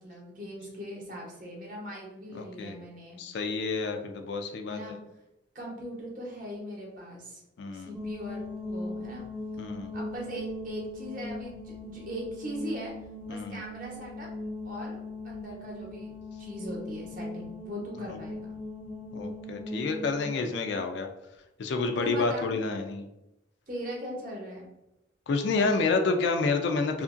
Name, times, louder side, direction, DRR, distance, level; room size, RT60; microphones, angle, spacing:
voice 1, 0.0-3.2 4.7-5.0 5.5-7.4 7.7-9.2 9.9-12.9 13.3-14.3 14.6-15.0 15.2-16.1 16.4-18.5 22.0-22.5 23.7-24.6, equal, 45° right, -2 dB, 0.8 m, -39 dB
voice 2, 2.3-2.7 3.2-5.0 7.6-8.0 9.6-9.9 13.3-13.6 18.1-18.2 19.1-21.1 21.6-23.1 25.3-27.0, left 3 dB, 60° left, 5 dB, 0.3 m, -29 dB
sound 1, 7.9-20.3, left 2 dB, 5° right, 0.6 m, -39 dB
2.8 x 2.5 x 2.5 m, 0.90 s
head